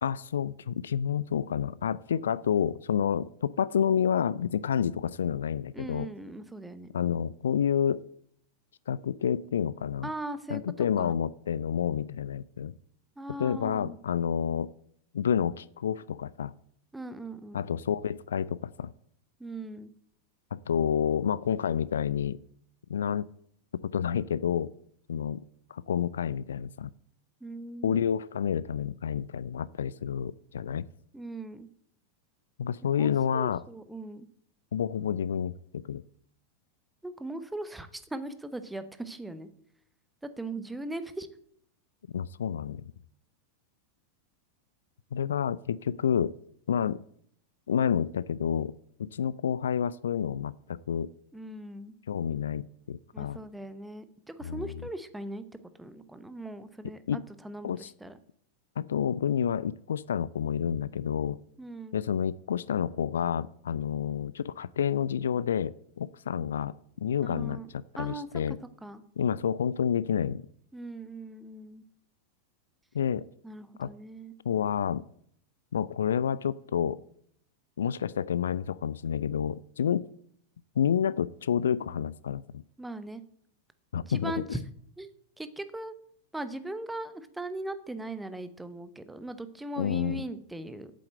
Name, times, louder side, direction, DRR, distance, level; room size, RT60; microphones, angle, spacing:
voice 1, 0.0-6.1 6.9-8.0 8.9-10.1 10.5-12.7 13.4-14.7 15.1-16.5 17.5-18.9 20.5-22.4 22.9-23.3 23.8-24.7 25.1-25.5 25.7-26.9 27.8-30.9 32.6-33.6 34.7-36.0 42.1-42.8 45.1-46.3 46.7-47.0 47.7-48.7 49.0-51.1 52.1-53.4 54.4-54.7 57.1-57.2 57.6-57.9 58.8-61.4 61.9-66.7 67.0-67.6 68.0-68.6 69.2-70.4 72.9-73.3 73.8-73.9 74.5-75.0 75.7-77.0 77.8-80.0 80.8-82.6 83.9-84.3 89.8-90.2, left 8 dB, 65° left, 20 dB, 0.3 m, -29 dB
voice 2, 5.7-6.9 10.0-11.1 13.2-14.0 16.9-17.6 19.4-19.9 27.4-28.0 31.1-31.7 32.8-34.3 37.0-39.5 40.2-41.3 51.3-51.9 53.1-55.4 55.8-58.2 61.6-62.0 67.2-67.7 68.0-68.3 68.8-69.0 70.7-71.8 73.4-74.3 82.8-83.2 84.1-84.6 85.0-85.1 85.4-85.9 86.3-90.9, right 2 dB, 5° right, 12 dB, 0.9 m, -39 dB
8.4 x 7.7 x 7.6 m, 0.67 s
figure-of-eight pair, 90°, 0 cm